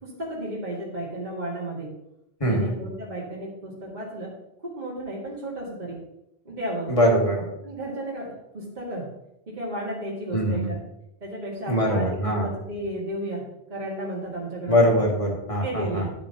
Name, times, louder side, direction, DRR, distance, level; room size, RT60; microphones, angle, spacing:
voice 1, 0.0-1.9 2.4-4.3 4.6-6.0 6.5-6.9 7.6-9.1 9.5-10.8 11.2-13.4 13.7-15.0 15.6-16.1, right 1 dB, 40° right, -5 dB, 2.0 m, -33 dB
voice 2, 2.4-2.8 6.9-7.5 10.3-10.7 11.7-12.5 14.7-16.0, equal, 30° left, 0 dB, 1.8 m, -22 dB
10.5 x 6.9 x 2.8 m, 0.82 s
omnidirectional pair, 1.2 m